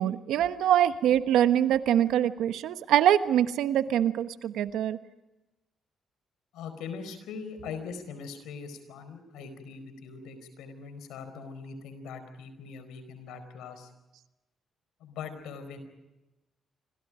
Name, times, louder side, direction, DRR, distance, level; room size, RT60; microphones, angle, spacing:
voice 1, 0.0-5.0, right 10 dB, 80° right, 11 dB, 1.2 m, -24 dB
voice 2, 6.5-13.9 15.0-15.8, left 5 dB, 85° left, 10 dB, 4.6 m, -41 dB
27.5 x 25.5 x 5.0 m, 0.99 s
supercardioid pair, 60°, 0 cm